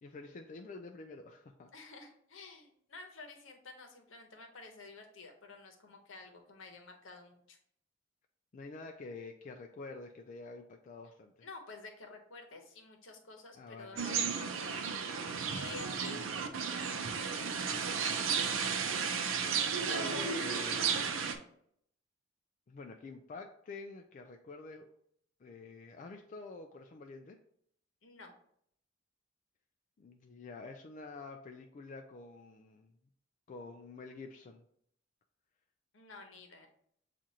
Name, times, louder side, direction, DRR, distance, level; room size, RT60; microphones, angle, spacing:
voice 1, 0.0-1.7 8.5-11.5 13.6-14.0 16.0-16.5 19.9-21.0 22.7-24.9 25.4-27.4 30.0-32.9 33.5-34.6, left 3 dB, 40° left, 3 dB, 0.3 m, -48 dB
voice 2, 1.7-7.6 11.4-14.8 15.5-16.2 28.0-28.3 35.9-36.7, left 3 dB, 75° left, 3 dB, 0.9 m, -51 dB
sound 1, 14.0-21.3, right 6 dB, 85° right, 0.5 m, -33 dB
7.3 x 2.5 x 2.7 m, 0.68 s
head